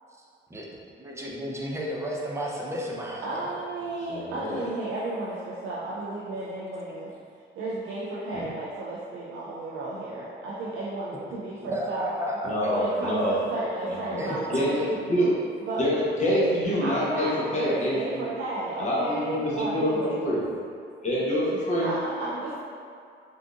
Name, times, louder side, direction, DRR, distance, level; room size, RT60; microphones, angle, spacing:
voice 1, 0.5-3.6 11.7-12.5 13.6-13.7 14.2-14.8, equal, 15° right, -3 dB, 0.5 m, -33 dB
voice 2, 3.2-7.1 7.6-12.2 12.7-14.9 15.7-15.8 16.8-20.4 21.8-22.6, right 2 dB, 90° right, -7 dB, 0.5 m, -33 dB
voice 3, 4.1-4.6 8.3-8.5 11.6-11.7 12.4-13.4 13.9-14.2 14.5-14.8 15.1-15.4 15.8-18.3 18.8-20.4 21.0-21.9, equal, 35° left, -7 dB, 0.9 m, -26 dB
3.7 x 2.5 x 2.4 m, 2.3 s
cardioid pair, 90°, 20 cm